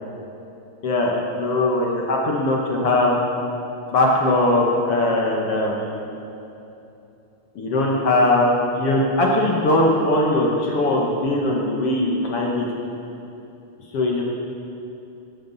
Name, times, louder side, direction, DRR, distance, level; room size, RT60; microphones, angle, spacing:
voice 1, 0.8-3.2 3.9-6.0 7.6-12.7 13.9-14.2, left 1 dB, 55° left, -1 dB, 2.0 m, -20 dB
16.5 x 13.0 x 4.1 m, 2.8 s
omnidirectional pair, 3.5 m